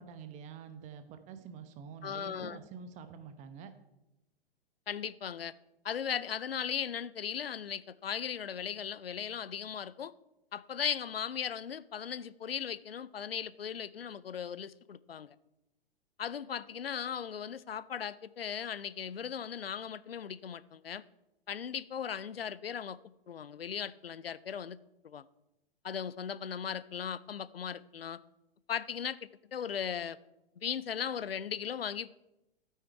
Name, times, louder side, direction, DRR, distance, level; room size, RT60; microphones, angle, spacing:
voice 1, 0.0-3.7, right 6 dB, 25° right, 9 dB, 1.0 m, -47 dB
voice 2, 2.0-2.6 4.9-5.5 5.8-10.1 10.5-15.4 16.2-21.0 21.5-23.0 23.3-24.8 25.0-25.3 25.8-28.2 28.7-30.2 30.6-32.1, left 8 dB, 75° left, 18 dB, 0.5 m, -37 dB
12.5 x 9.3 x 4.6 m, 0.93 s
figure-of-eight pair, 110°, 29 cm